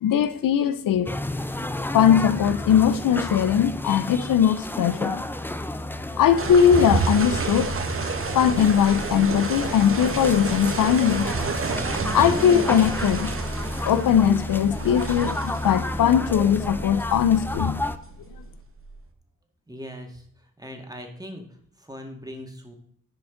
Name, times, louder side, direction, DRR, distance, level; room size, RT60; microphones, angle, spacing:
voice 1, 0.0-1.2 1.8-5.2 6.2-7.8 8.3-11.3 12.1-13.3 13.8-17.8, left 9 dB, 85° left, 0.5 m, -20 dB
sound 1, 1.1-18.0, left 1 dB, 5° left, 0.5 m, -31 dB
sound 2, 6.4-18.9, right 4 dB, 40° right, 0.9 m, -30 dB
voice 2, 19.7-20.2 20.6-21.4 21.8-22.7, equal, 10° right, 1.8 m, -39 dB
10.5 x 5.1 x 3.7 m
cardioid pair, 70°, 32 cm